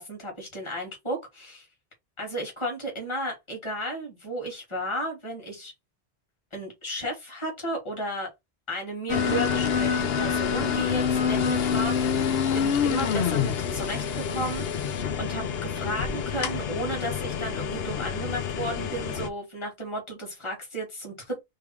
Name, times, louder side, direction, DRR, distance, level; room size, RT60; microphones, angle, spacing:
voice 1, 0.0-1.7 2.2-5.7 6.5-8.3 8.7-21.4, right 1 dB, 30° left, 1.9 m, -34 dB
sound 1, 9.1-19.3, left 7 dB, 75° left, 0.9 m, -27 dB
3.4 x 3.3 x 4.6 m
omnidirectional pair, 1.0 m